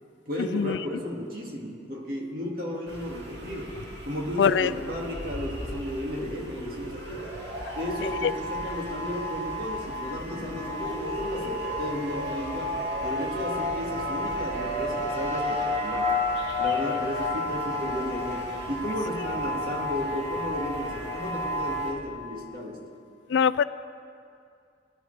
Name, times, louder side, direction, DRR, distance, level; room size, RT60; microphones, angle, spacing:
voice 1, 0.3-3.8 4.0-7.3 7.8-16.2 16.6-22.8, equal, 55° right, -1 dB, 2.1 m, -34 dB
sound 1, 2.9-21.9, left 1 dB, 70° right, 2.4 m, -32 dB
voice 2, 4.4-4.7 8.2-8.3 23.3-23.6, left 7 dB, 85° left, 15 dB, 0.4 m, -22 dB
22.5 x 11.0 x 3.3 m, 2.4 s
head